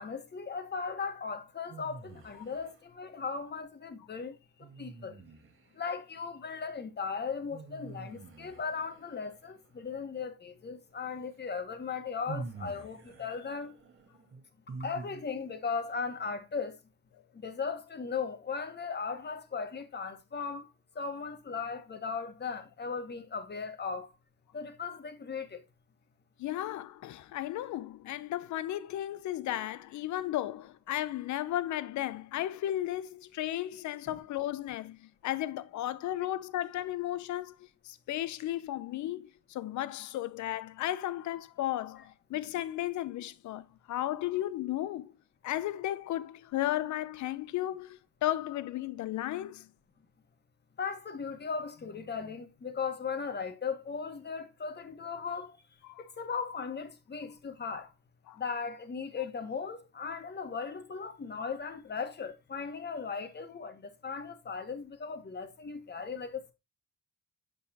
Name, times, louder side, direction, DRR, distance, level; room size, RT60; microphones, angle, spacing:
voice 1, 0.0-5.2 5.7-13.8 14.8-16.8 17.3-24.1 24.5-25.6 34.1-34.2 50.8-55.6 56.0-57.9 58.4-66.5, left 5 dB, 35° left, 1.3 m, -37 dB
sound 1, 1.7-2.8 4.6-5.8 7.5-9.5 11.3-11.4 12.3-15.5, right 4 dB, 45° right, 1.3 m, -46 dB
voice 2, 26.4-45.1 45.4-49.7 55.8-56.0 58.3-58.4, left 13 dB, 70° left, 0.6 m, -34 dB
7.9 x 5.5 x 2.8 m
cardioid pair, 90°, 30 cm